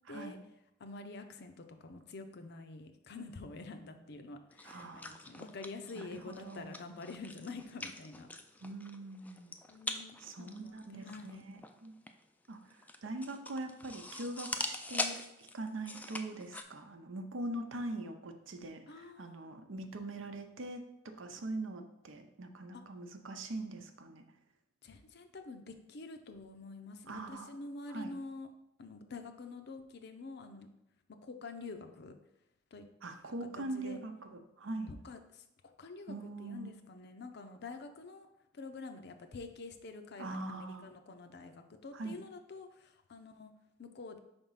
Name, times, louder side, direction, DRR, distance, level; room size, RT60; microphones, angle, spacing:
voice 1, 0.1-0.4 4.6-5.2 6.0-6.7 8.6-9.6 10.2-11.9 12.5-24.2 27.1-27.5 27.9-28.2 33.0-34.9 36.1-36.7 40.2-40.9 41.9-42.2, right 2 dB, 85° right, 6 dB, 0.7 m, -42 dB
voice 2, 0.8-8.3 9.7-11.4 18.9-19.4 22.7-22.8 24.8-28.5 28.8-30.7 31.2-32.1 32.7-32.8 33.6-34.0 34.9-35.4 35.8-38.3 38.5-43.5 43.8-44.2, left 3 dB, 60° left, 7 dB, 0.6 m, -47 dB
sound 1, 4.5-16.6, left 2 dB, 10° left, 0.3 m, -43 dB
4.9 x 3.5 x 5.6 m, 0.85 s
head